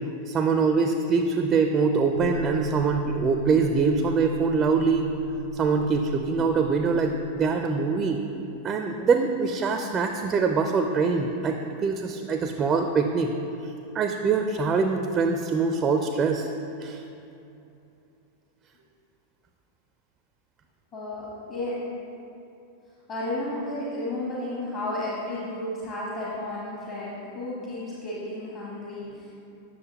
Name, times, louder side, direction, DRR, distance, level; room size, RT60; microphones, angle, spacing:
voice 1, 0.3-5.1 5.5-8.2 8.6-13.3 13.6-16.5 16.8-17.0, right 4 dB, 25° right, 5 dB, 0.4 m, -24 dB
sound 1, 2.1-7.3, right 3 dB, 85° right, 0.5 m, -36 dB
voice 2, 20.9-21.8 23.1-29.3, left 1 dB, 35° left, -7 dB, 1.3 m, -33 dB
8.6 x 6.3 x 2.9 m, 2.8 s
figure-of-eight pair, 90°, 0 cm